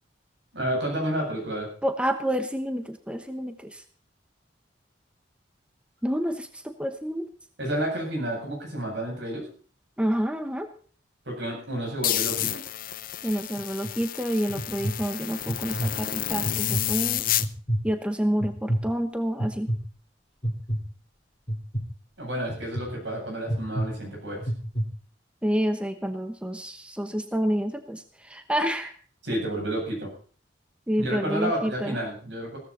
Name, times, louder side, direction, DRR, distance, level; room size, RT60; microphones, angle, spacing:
voice 1, 0.5-1.7 7.6-9.5 11.3-12.6 22.2-24.4 29.2-30.1 31.0-32.6, right 1 dB, 80° right, 1 dB, 8.0 m, -30 dB
voice 2, 1.8-3.8 6.0-7.3 10.0-10.7 13.2-17.2 17.8-19.7 25.4-28.9 30.9-32.0, equal, 5° right, 8 dB, 1.0 m, -28 dB
sound 1, 12.0-17.5, left 12 dB, 50° left, 0.6 m, -30 dB
sound 2, 13.6-13.9 14.5-14.9 15.5-15.9 16.4-16.9 17.4-17.8 18.4-18.8 19.4-19.8 20.4-20.8 21.5-21.8 22.5-22.8 23.5-23.8 24.4-24.8, right 1 dB, 35° left, 3.1 m, -27 dB
16.0 x 14.0 x 4.2 m, 0.42 s
head